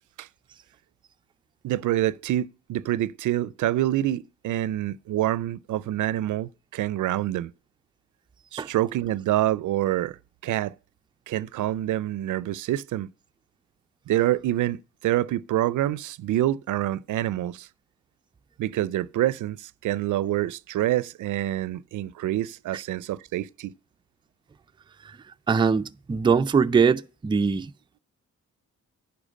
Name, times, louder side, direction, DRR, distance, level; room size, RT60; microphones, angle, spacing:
voice 1, 1.6-7.5 8.5-10.7 11.3-13.1 14.1-17.7 18.6-23.7, right 13 dB, 85° right, 0.5 m, -26 dB
voice 2, 25.5-27.7, right 5 dB, 15° right, 0.3 m, -22 dB
10.0 x 4.5 x 6.3 m
cardioid pair, 110°, 30 cm